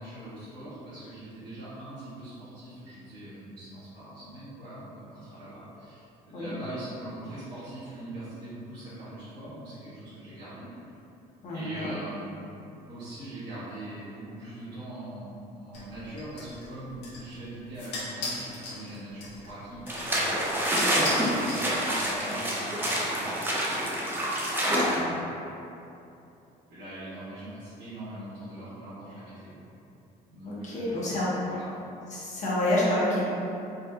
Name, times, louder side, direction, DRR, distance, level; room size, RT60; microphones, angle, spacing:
voice 1, 0.0-10.7 11.5-24.2 24.6-25.4 26.7-29.6 30.3-31.1 31.5-31.7, right 1 dB, 75° right, -14 dB, 1.3 m, -42 dB
voice 2, 11.4-11.9 20.9-21.1 24.6-25.0 30.4-31.3 32.1-33.2, left 1 dB, 45° left, -8 dB, 1.0 m, -28 dB
sound 1, 15.7-22.2, left 2 dB, 80° left, 0.9 m, -40 dB
sound 2, 19.9-25.0, equal, 10° right, 0.5 m, -27 dB
4.1 x 2.5 x 2.4 m, 2.8 s
cardioid pair, 110°, 17 cm